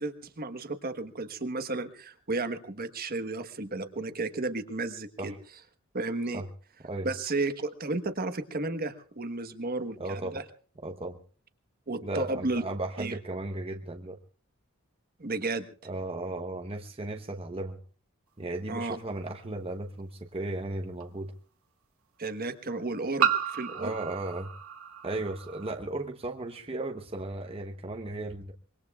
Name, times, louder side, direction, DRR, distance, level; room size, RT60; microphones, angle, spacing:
voice 1, 0.0-5.3 5.9-6.4 7.0-10.4 11.9-12.6 13.0-13.2 15.2-15.7 18.7-19.0 22.2-23.9, right 2 dB, 45° right, 9 dB, 1.2 m, -33 dB
voice 2, 10.0-10.4 10.8-11.2 12.0-14.2 15.8-17.8 18.4-21.3 23.8-24.5 25.0-28.5, right 2 dB, 30° right, 3 dB, 1.0 m, -35 dB
sound 1, 19.3-19.4 21.0-21.1 23.2-25.7, right 8 dB, 90° right, 1.2 m, -31 dB
25.0 x 22.5 x 2.4 m, 0.42 s
head